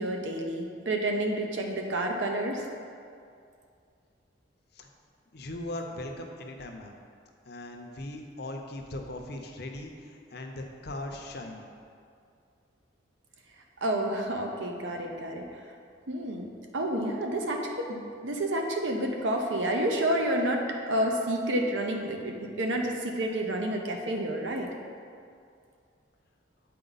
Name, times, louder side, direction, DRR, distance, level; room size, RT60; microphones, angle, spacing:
voice 1, 0.0-2.6 13.8-15.5 16.1-24.7, right 1 dB, 75° right, 2 dB, 0.8 m, -29 dB
voice 2, 5.3-7.0 7.5-11.7, left 1 dB, 55° left, 3 dB, 0.6 m, -39 dB
7.6 x 4.4 x 4.0 m, 2.3 s
head